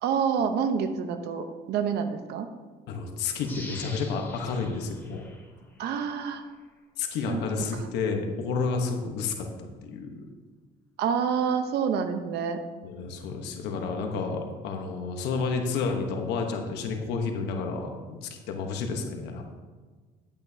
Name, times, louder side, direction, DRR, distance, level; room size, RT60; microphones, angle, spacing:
voice 1, 0.0-2.5 5.8-6.4 7.3-7.4 7.7-7.9 11.0-12.6, right 7 dB, 75° right, 7 dB, 0.8 m, -27 dB
voice 2, 2.9-5.2 7.0-10.2 12.8-19.4, left 4 dB, 85° left, 3 dB, 1.1 m, -30 dB
sound 1, 3.4-6.1 6.6-6.7, left 2 dB, 10° left, 2.7 m, -45 dB
10.5 x 8.7 x 2.8 m, 1.4 s
cardioid pair, 110°, 17 cm